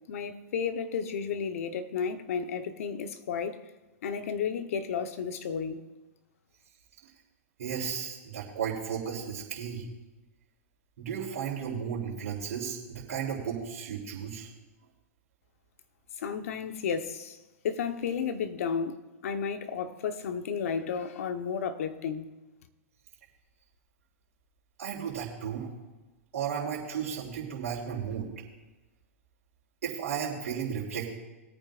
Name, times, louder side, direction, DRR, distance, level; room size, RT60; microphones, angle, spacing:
voice 1, 0.1-3.6 4.0-5.8 16.2-17.4 17.6-22.3, left 6 dB, 65° left, 1.1 m, -32 dB
voice 2, 7.6-9.8 11.0-14.5 24.8-25.7 26.3-28.3 29.8-31.1, right 7 dB, 70° right, 3.3 m, -34 dB
21.0 x 9.1 x 2.6 m
hypercardioid pair, 110°, 8 cm